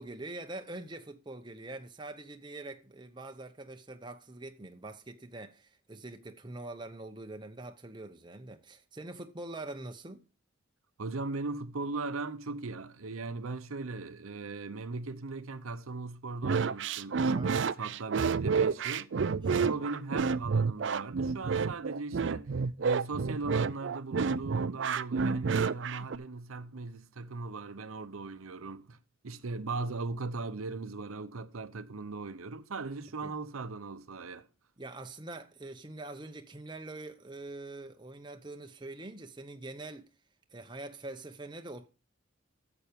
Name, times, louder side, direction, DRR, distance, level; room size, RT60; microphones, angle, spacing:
voice 1, 0.0-10.2 17.3-17.7 19.4-19.9 25.9-26.1 33.2-33.4 34.8-40.1 40.5-41.9, right 2 dB, 20° right, 0.8 m, -44 dB
voice 2, 11.0-22.5 22.8-29.0 29.2-34.5, right 3 dB, 90° right, 0.8 m, -38 dB
sound 1, 16.4-26.2, right 5 dB, 60° right, 0.4 m, -29 dB
9.1 x 7.0 x 5.2 m
head